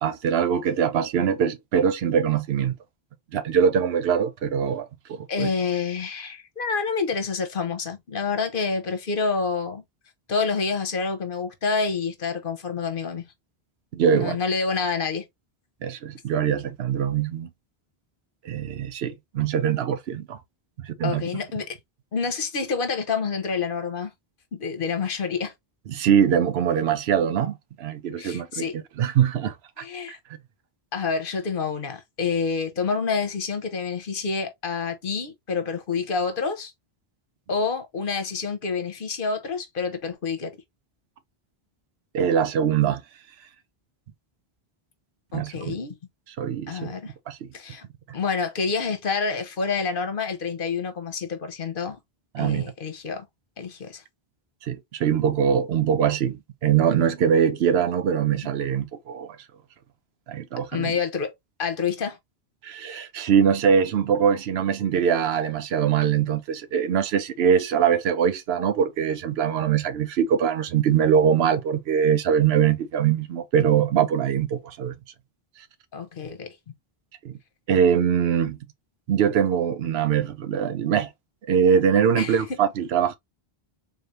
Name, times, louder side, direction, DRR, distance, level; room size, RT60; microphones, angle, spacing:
voice 1, 0.0-2.7 3.3-5.5 13.9-14.4 15.8-17.5 18.4-20.4 20.8-21.2 25.9-29.8 42.1-43.0 45.3-45.8 46.4-46.9 47.3-47.5 52.3-52.6 54.6-59.4 60.3-60.9 62.6-74.9 77.2-77.3 77.7-78.6 79.1-81.1 81.5-83.2, right 8 dB, 85° right, 0.9 m, -22 dB
voice 2, 5.3-9.8 10.3-13.2 14.1-15.3 21.0-21.8 22.1-24.1 24.5-25.5 28.1-28.8 29.8-30.2 30.9-36.7 37.5-40.5 45.3-46.0 46.7-47.1 47.5-47.8 48.1-52.0 52.4-53.3 53.6-54.0 60.7-61.3 61.6-62.2 75.9-76.6 82.2-82.6, left 5 dB, 60° left, 1.0 m, -28 dB
3.9 x 3.2 x 2.6 m
omnidirectional pair, 1.0 m